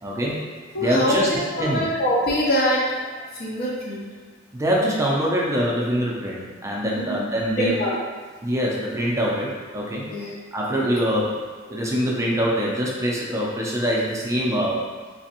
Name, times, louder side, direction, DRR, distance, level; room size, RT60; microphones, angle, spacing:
voice 1, 0.0-0.4 0.8-1.8 4.5-7.8 8.4-10.2 10.5-11.3 11.7-14.8, equal, 15° right, -4 dB, 0.5 m, -24 dB
voice 2, 0.7-3.1 3.3-4.1 6.9-7.2 7.6-7.9 10.1-10.3, equal, 50° left, -5 dB, 0.7 m, -24 dB
3.3 x 3.0 x 2.9 m, 1.5 s
head